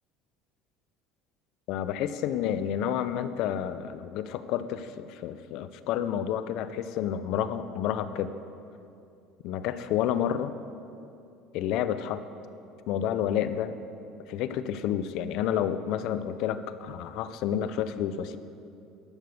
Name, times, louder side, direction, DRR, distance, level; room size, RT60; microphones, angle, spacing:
voice 1, 1.7-8.3 9.4-10.5 11.5-12.2 12.9-13.7 14.3-18.4, left 10 dB, 65° left, 12 dB, 0.6 m, -30 dB
11.5 x 6.8 x 7.0 m, 2.6 s
supercardioid pair, 95°, 0 cm